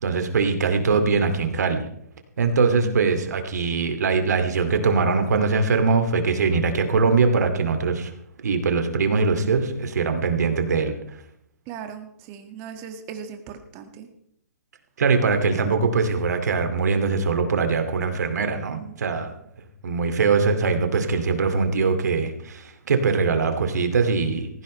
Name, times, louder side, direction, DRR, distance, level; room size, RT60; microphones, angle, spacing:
voice 1, 0.0-1.8 2.4-8.1 8.4-10.9 15.0-19.3 19.8-24.5, right 4 dB, 75° right, 6 dB, 2.5 m, -22 dB
voice 2, 2.8-3.5 11.7-14.1 18.7-18.9, right 7 dB, 30° right, 6 dB, 1.8 m, -39 dB
18.0 x 15.5 x 3.3 m, 0.69 s
hypercardioid pair, 150°, 9 cm